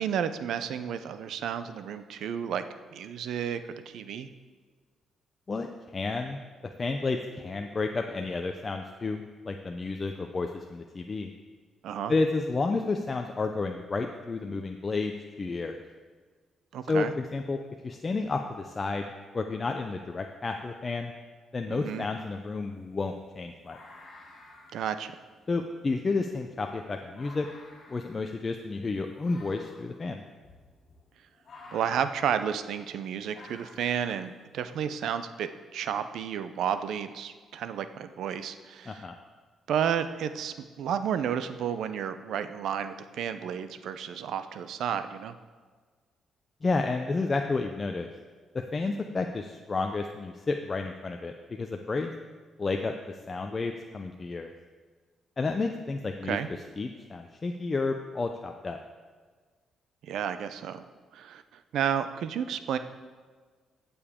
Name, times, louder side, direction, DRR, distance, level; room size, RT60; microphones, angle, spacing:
voice 1, 0.0-2.6 2.9-3.6 3.9-4.3 11.8-12.1 16.7-17.1 21.7-22.0 24.7-25.1 31.7-39.0 39.7-45.4 56.2-56.5 60.0-60.9 61.1-61.4 61.7-62.8, right 8 dB, 75° right, 11 dB, 0.6 m, -31 dB
voice 2, 5.9-6.4 6.8-11.3 12.1-15.8 16.9-21.1 21.5-23.8 25.5-27.5 27.9-30.2 38.9-39.1 46.6-48.1 48.5-51.3 51.6-52.1 52.6-54.5 55.4-56.4 56.8-58.8, left 3 dB, 30° left, 4 dB, 0.6 m, -31 dB
sound 1, 21.7-21.8 22.1-34.7, left 2 dB, 50° left, 3.0 m, -53 dB
15.5 x 7.0 x 3.7 m, 1.5 s
cardioid pair, 90°, 0 cm